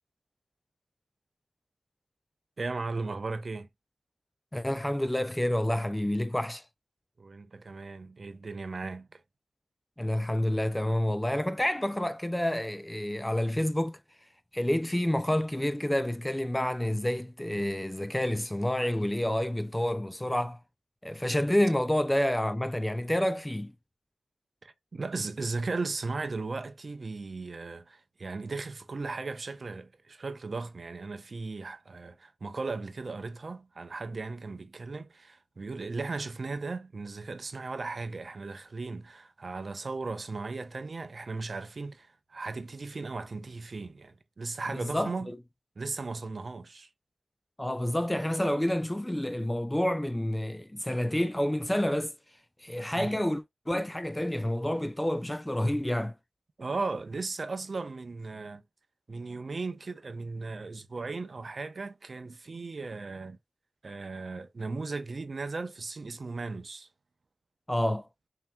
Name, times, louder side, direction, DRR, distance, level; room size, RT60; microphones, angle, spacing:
voice 1, 2.6-3.7 7.2-9.2 24.6-45.3 45.8-46.9 52.9-53.1 56.6-58.6 59.1-63.4 63.8-66.9, right 3 dB, 50° right, 0.6 m, -37 dB
voice 2, 4.5-6.6 10.0-14.0 14.5-20.6 21.0-23.7 44.7-45.4 47.6-52.1 52.6-56.1 67.7-68.0, left 1 dB, 10° left, 0.3 m, -29 dB
5.6 x 2.8 x 2.2 m
wide cardioid pair, 90°, 0 cm